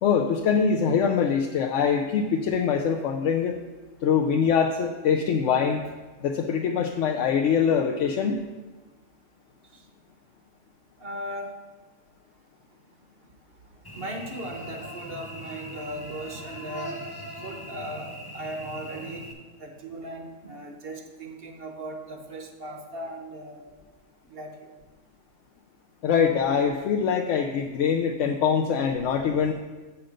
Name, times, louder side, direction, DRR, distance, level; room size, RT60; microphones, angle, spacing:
voice 1, 0.0-3.6 4.0-5.8 6.2-8.4 26.0-29.5, left 6 dB, 85° left, 3 dB, 0.9 m, -23 dB
voice 2, 11.0-11.5 13.9-17.0 17.4-19.2 19.6-23.6 24.3-24.7, right 1 dB, 55° right, 3 dB, 1.0 m, -37 dB
Cricket / Buzz, 13.8-19.3, equal, 20° left, 0.8 m, -40 dB
7.6 x 5.8 x 5.1 m, 1.2 s
omnidirectional pair, 1.2 m